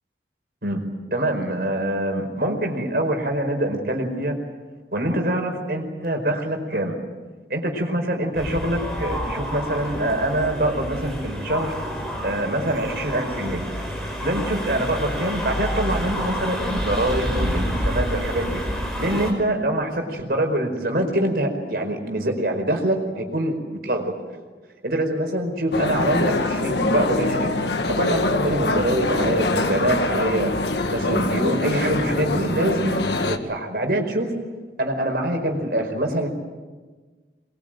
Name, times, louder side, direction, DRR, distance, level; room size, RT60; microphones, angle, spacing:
voice 1, 1.1-4.4 4.9-7.0 7.5-11.7 12.2-13.6 14.2-18.6 19.0-24.1 24.8-27.5 28.0-30.5 30.9-34.3 34.8-36.3, right 1 dB, 60° right, 4 dB, 4.8 m, -24 dB
sound 1, 8.3-19.3, equal, ahead, 5.6 m, -28 dB
sound 2, 25.7-33.4, left 2 dB, 80° left, 1.8 m, -24 dB
23.5 x 22.0 x 9.1 m, 1.4 s
head